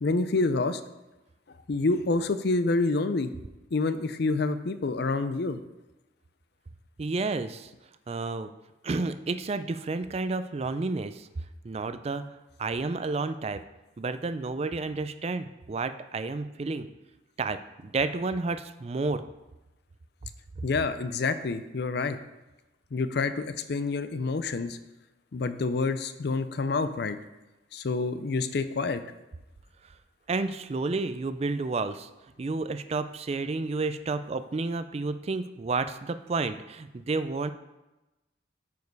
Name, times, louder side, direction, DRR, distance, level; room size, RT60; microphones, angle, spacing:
voice 1, 0.0-0.8 1.7-3.3 3.7-5.6 20.6-22.2 22.9-24.8 25.3-27.2 27.7-29.0, left 3 dB, 55° left, 12 dB, 0.5 m, -27 dB
voice 2, 7.0-7.7 8.1-8.5 8.8-11.3 11.6-12.3 12.6-13.6 14.0-16.9 17.4-19.3 30.3-32.1 32.4-37.5, right 3 dB, 30° right, 11 dB, 0.3 m, -31 dB
9.3 x 5.2 x 4.7 m, 1.0 s
head